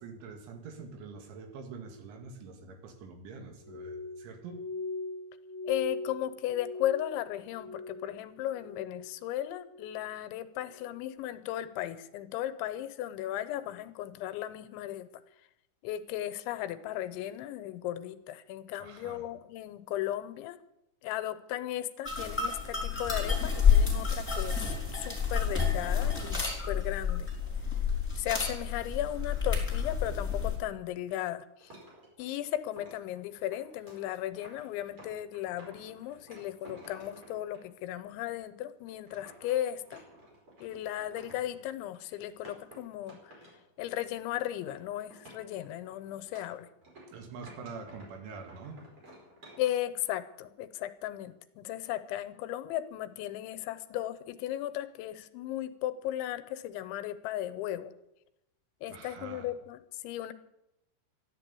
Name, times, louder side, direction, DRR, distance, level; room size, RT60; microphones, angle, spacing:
voice 1, 0.0-4.7 18.8-19.3 47.1-48.8 58.9-59.5, right 4 dB, 90° right, 4 dB, 4.6 m, -45 dB
Glass, 3.6-8.2 8.5-9.2 9.6-10.1 10.7-11.0, left 3 dB, 55° right, 6.2 m, -41 dB
voice 2, 5.6-15.1 15.8-20.6 21.0-27.3 28.2-31.7 32.2-40.0 40.6-43.4 43.8-46.7 49.6-57.9 58.8-60.3, left 13 dB, 90° left, 11 dB, 3.2 m, -36 dB
sound 1, 22.0-30.6, left 6 dB, 5° left, 4.0 m, -29 dB
sound 2, 31.6-37.6 38.2-38.3 38.8-44.2 44.5-44.8 45.1-48.1 48.5-49.7, right 1 dB, 30° right, 5.3 m, -54 dB
13.5 x 12.0 x 8.4 m, 0.88 s
omnidirectional pair, 5.3 m